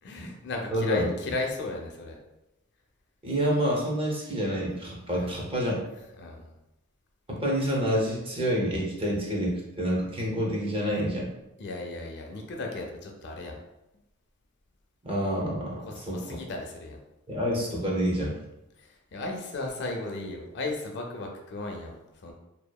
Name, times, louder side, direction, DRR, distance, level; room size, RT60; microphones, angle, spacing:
voice 1, 0.0-2.2 5.0-5.3 6.2-6.5 11.6-13.6 15.8-17.0 18.8-22.3, left 2 dB, 55° left, 1 dB, 0.4 m, -35 dB
voice 2, 0.7-1.1 3.2-5.8 7.3-11.3 15.0-16.4 17.3-18.3, equal, 25° right, -3 dB, 0.6 m, -28 dB
2.7 x 2.3 x 2.2 m, 0.92 s
head